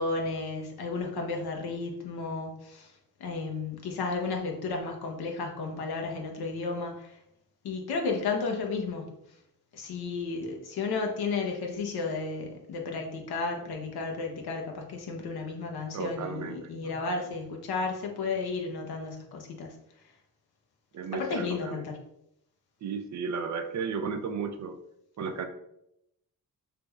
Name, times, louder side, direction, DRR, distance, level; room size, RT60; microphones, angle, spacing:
voice 1, 0.0-2.9 3.2-7.2 7.6-9.1 9.7-19.7 21.1-22.0, left 4 dB, 80° left, 1 dB, 0.8 m, -33 dB
voice 2, 15.9-17.1 20.9-21.9 22.8-24.8 25.2-25.5, right 5 dB, 50° right, 8 dB, 0.4 m, -34 dB
3.4 x 3.0 x 2.3 m, 0.80 s
cardioid pair, 65°, 37 cm